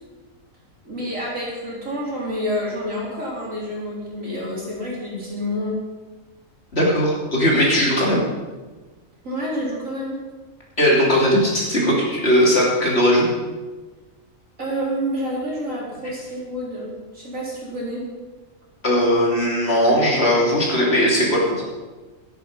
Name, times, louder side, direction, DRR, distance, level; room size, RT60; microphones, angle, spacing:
voice 1, 0.8-5.8 9.2-10.2 14.6-18.1, equal, 70° right, -5 dB, 4.5 m, -28 dB
voice 2, 6.7-8.2 10.8-13.3 18.8-21.6, equal, 50° left, -4 dB, 3.6 m, -18 dB
12.5 x 11.0 x 5.4 m, 1.3 s
omnidirectional pair, 1.4 m